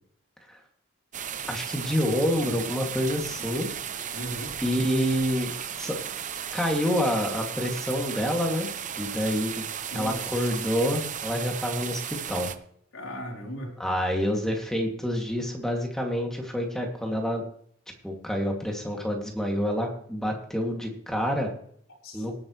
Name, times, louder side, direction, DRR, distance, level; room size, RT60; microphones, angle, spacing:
sound 1, 1.1-12.6, right 8 dB, 35° right, 0.7 m, -35 dB
voice 1, 1.5-3.7 4.6-5.5 5.8-6.0 6.5-8.7 9.0-9.6 9.9-12.5 13.8-17.4 18.0-21.5 22.1-22.3, equal, ahead, 0 dB, 2.4 m, -27 dB
voice 2, 4.1-4.5 9.9-10.5 12.9-13.8 22.0-22.2, equal, 75° left, -1 dB, 4.3 m, -37 dB
18.5 x 9.1 x 3.2 m, 0.63 s
head